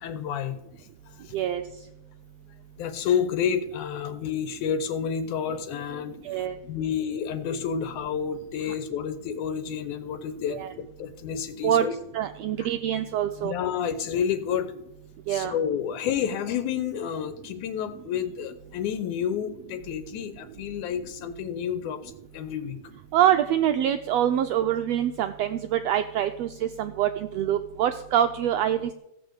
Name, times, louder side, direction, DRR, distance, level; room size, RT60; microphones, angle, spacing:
voice 1, 0.0-1.3 2.8-11.9 12.6-12.7 13.4-14.7 15.3-22.8, left 8 dB, 80° left, 10 dB, 2.2 m, -30 dB
voice 2, 1.3-1.6 6.2-6.6 10.5-10.7 11.6-11.9 12.1-13.5 15.3-15.5 23.1-28.9, right 10 dB, 90° right, 9 dB, 1.4 m, -25 dB
15.0 x 6.5 x 7.9 m, 0.85 s
omnidirectional pair, 3.6 m